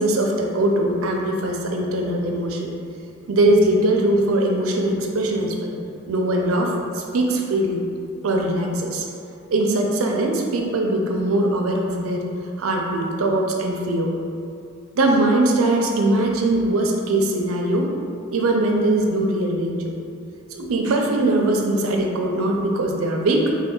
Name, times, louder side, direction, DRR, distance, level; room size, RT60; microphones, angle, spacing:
voice 1, 0.0-2.7 3.3-5.7 6.1-7.8 8.2-9.1 9.5-12.3 12.6-14.1 14.9-17.9 18.3-19.9 20.5-23.6, right 1 dB, 80° right, 1 dB, 0.5 m, -21 dB
3.7 x 2.2 x 3.6 m, 2.5 s
head